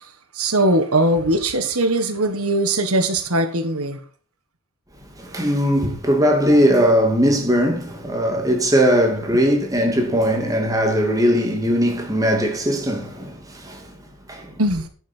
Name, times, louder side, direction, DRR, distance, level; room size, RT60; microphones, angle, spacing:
voice 1, 0.3-4.0 14.6-14.8, right 1 dB, 75° right, 1.6 m, -20 dB
voice 2, 5.2-13.9 14.3-14.5, equal, 15° right, 2.4 m, -19 dB
11.0 x 9.0 x 4.5 m
head